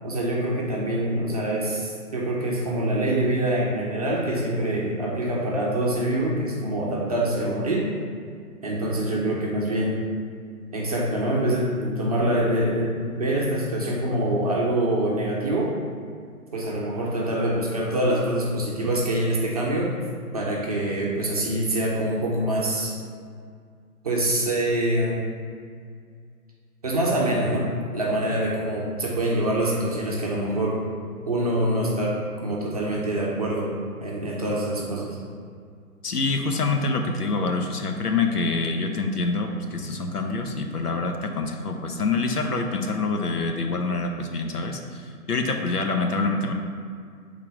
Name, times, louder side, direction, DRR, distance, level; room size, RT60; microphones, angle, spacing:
voice 1, 0.0-7.9 8.6-10.1 10.7-15.8 16.5-19.9 20.3-22.9 24.0-25.3 26.8-27.7 27.9-30.8 31.2-33.7 34.0-35.2, right 1 dB, 25° right, -4 dB, 0.7 m, -25 dB
voice 2, 36.0-45.0 45.3-46.5, left 3 dB, 75° left, 4 dB, 0.9 m, -26 dB
5.9 x 3.8 x 4.8 m, 2.2 s
figure-of-eight pair, 145°, 46 cm